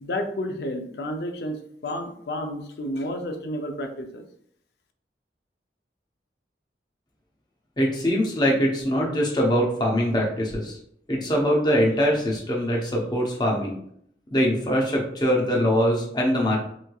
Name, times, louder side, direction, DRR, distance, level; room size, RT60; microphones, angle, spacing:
voice 1, 0.0-1.6 1.8-4.2, left 1 dB, 70° left, 5 dB, 0.5 m, -31 dB
voice 2, 7.8-10.8 11.1-13.8 14.3-16.6, equal, 25° left, -2 dB, 0.7 m, -23 dB
3.4 x 3.1 x 2.3 m, 0.68 s
head